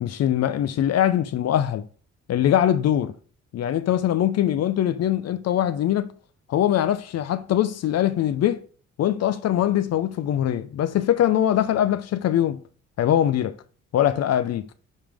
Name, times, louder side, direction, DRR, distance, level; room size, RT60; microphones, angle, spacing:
voice 1, 0.0-1.9 2.3-3.1 3.5-6.1 6.5-8.6 9.0-12.6 13.0-13.5 13.9-14.7, left 11 dB, 55° left, 0.5 m, -22 dB
8.6 x 3.7 x 3.4 m
cardioid pair, 90°, 30 cm